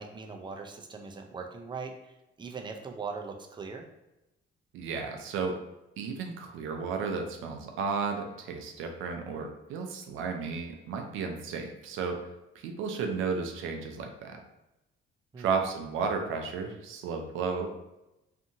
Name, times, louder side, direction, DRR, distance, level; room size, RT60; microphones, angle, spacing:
voice 1, 0.0-1.9 2.4-3.9 15.3-15.5, right 4 dB, 25° right, 3 dB, 0.4 m, -40 dB
voice 2, 4.7-5.6 6.0-14.4 15.4-17.7, right 5 dB, 85° right, 4 dB, 0.4 m, -33 dB
2.6 x 2.6 x 2.7 m, 0.94 s
cardioid pair, 90°, 20 cm